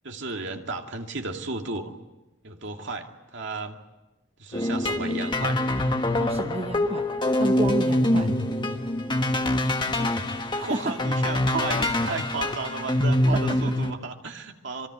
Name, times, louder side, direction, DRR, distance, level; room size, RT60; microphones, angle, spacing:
voice 1, 0.0-1.9 2.4-3.8 4.4-5.6 10.0-10.2 10.6-14.9, right 3 dB, 60° right, 3 dB, 2.5 m, -34 dB
sound 1, 4.5-13.9, left 1 dB, 20° left, 1.5 m, -25 dB
voice 2, 6.2-7.1 7.4-8.3 10.6-11.0 13.3-13.6, right 2 dB, 30° right, 6 dB, 0.9 m, -31 dB
26.5 x 22.5 x 9.5 m, 1.0 s
head